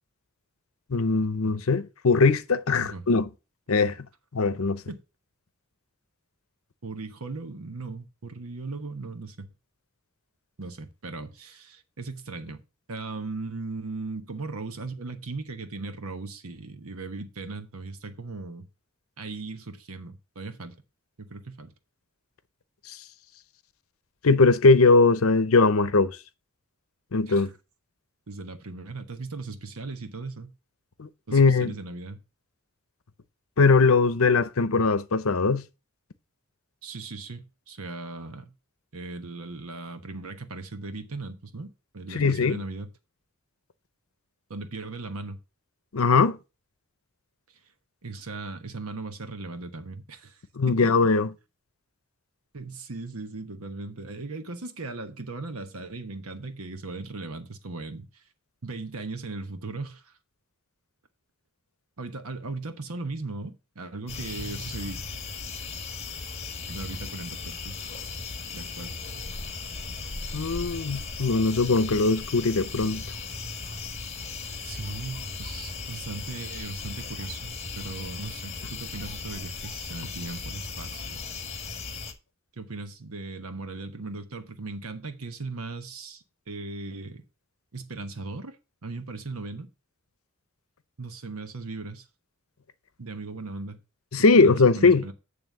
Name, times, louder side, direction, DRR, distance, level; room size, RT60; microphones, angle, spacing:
voice 1, 0.9-3.3 3.7-3.9 4.3-4.8 24.2-26.2 27.1-27.5 31.0-31.7 33.6-35.6 42.1-42.6 45.9-46.4 50.6-51.3 70.3-73.0 94.1-95.0, left 4 dB, 75° left, 0.8 m, -20 dB
voice 2, 6.8-9.5 10.6-12.6 12.9-18.6 19.2-20.8 21.2-21.7 27.3-27.5 28.3-30.5 31.3-32.2 36.8-38.5 38.9-42.9 44.5-45.4 48.0-50.4 52.5-58.2 58.6-60.1 62.0-65.0 66.7-67.8 68.5-68.9 74.6-81.2 82.6-87.2 87.7-89.7 91.0-92.1 93.0-93.8 94.4-95.1, right 3 dB, 90° right, 1.2 m, -38 dB
sound 1, 64.1-82.1, left 4 dB, 30° left, 1.4 m, -37 dB
9.2 x 3.4 x 6.5 m
head